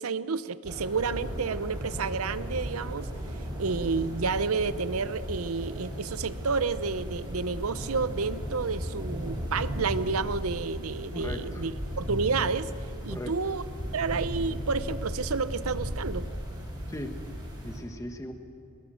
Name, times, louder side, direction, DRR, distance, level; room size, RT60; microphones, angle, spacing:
voice 1, 0.0-3.1 3.6-11.7 12.0-12.7 13.0-13.6 13.9-16.2, right 4 dB, 90° right, 15 dB, 0.7 m, -30 dB
sound 1, 0.6-17.8, equal, 20° right, 5.1 m, -36 dB
voice 2, 11.1-11.7 13.1-13.3 16.9-17.1 17.6-18.3, left 1 dB, 15° left, 5 dB, 1.4 m, -38 dB
22.5 x 20.0 x 6.4 m, 2.8 s
head